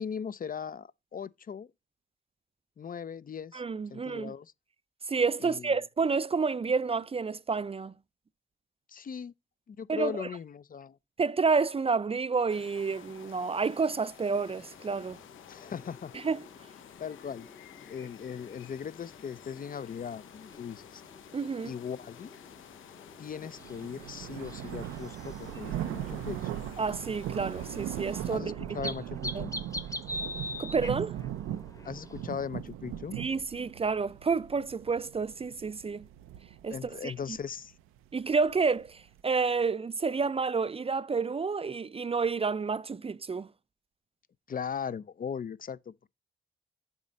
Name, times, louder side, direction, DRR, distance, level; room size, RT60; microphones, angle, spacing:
voice 1, 0.0-1.7 2.8-3.6 3.9-4.5 5.4-5.7 8.9-9.3 9.7-11.0 15.5-16.1 17.0-17.5 17.9-21.0 21.7-22.3 23.2-26.5 28.3-29.5 31.8-33.2 36.7-37.7 44.5-45.9, left 7 dB, 45° left, 0.5 m, -38 dB
voice 2, 3.5-4.3 5.1-7.9 9.9-10.3 11.2-15.2 16.1-16.4 21.3-21.7 26.8-28.6 28.8-28.9 29.3-29.5 30.6-31.1 33.2-36.1 36.6-37.4 38.1-43.5, right 4 dB, 30° right, 0.4 m, -29 dB
sound 1, 12.5-28.4, left 9 dB, 75° left, 0.8 m, -52 dB
sound 2, 14.4-32.5, left 1 dB, 15° left, 0.9 m, -46 dB
sound 3, 23.3-39.2, right 11 dB, 85° right, 0.5 m, -39 dB
7.2 x 4.2 x 5.1 m
supercardioid pair, 45°, 21 cm